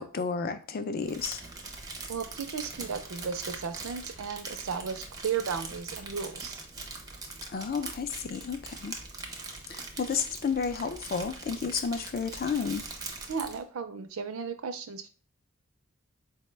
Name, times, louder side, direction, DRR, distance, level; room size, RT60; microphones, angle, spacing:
voice 1, 0.0-1.4 7.5-9.0 9.7-12.8, left 5 dB, 45° left, 9 dB, 0.4 m, -32 dB
Crumpling crinkling, 1.0-13.6, right 3 dB, 20° right, 0.5 m, -42 dB
voice 2, 2.1-6.6 13.3-15.1, right 6 dB, 85° right, 9 dB, 0.5 m, -35 dB
4.3 x 2.1 x 3.2 m, 0.38 s
head